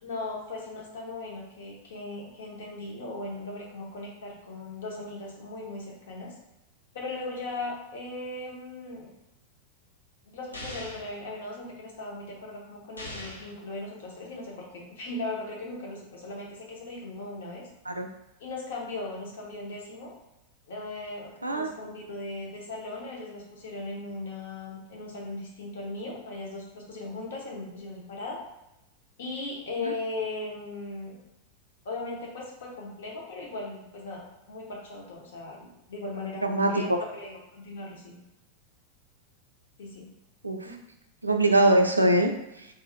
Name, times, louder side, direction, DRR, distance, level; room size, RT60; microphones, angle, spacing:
voice 1, 0.0-6.3 6.9-9.1 10.2-17.6 18.4-20.1 20.7-28.4 29.2-31.2 31.8-38.2 39.8-40.1 40.6-40.8, left 2 dB, 60° left, -2 dB, 1.0 m, -38 dB
sound 1, 10.5-11.1 13.0-13.6, left 1 dB, 80° left, 0.7 m, -40 dB
voice 2, 21.4-21.7 29.8-29.9 36.4-37.0 40.4-40.7 41.2-42.7, right 1 dB, 80° right, 4 dB, 0.3 m, -23 dB
3.8 x 2.8 x 2.6 m, 0.91 s
figure-of-eight pair, 90°, 0 cm